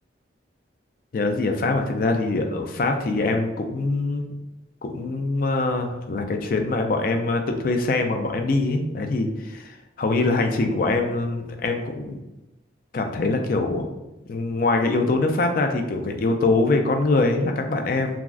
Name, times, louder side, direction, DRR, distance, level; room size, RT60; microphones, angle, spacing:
voice 1, 1.1-4.3 4.8-12.2 12.9-14.0 14.3-18.2, left 3 dB, 50° left, 4 dB, 0.3 m, -23 dB
3.4 x 2.0 x 2.4 m, 1.0 s
head